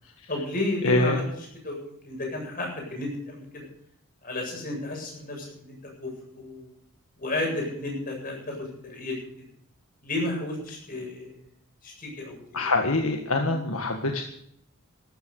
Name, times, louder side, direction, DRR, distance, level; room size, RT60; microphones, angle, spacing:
voice 1, 0.3-3.7 4.2-6.7 7.2-9.3 10.0-11.3 11.8-12.7 13.4-13.6, left 2 dB, 40° left, 0 dB, 8.0 m, -33 dB
voice 2, 0.8-1.2 12.5-14.2, left 2 dB, 75° left, 3 dB, 1.8 m, -24 dB
14.0 x 13.5 x 6.6 m, 0.70 s
head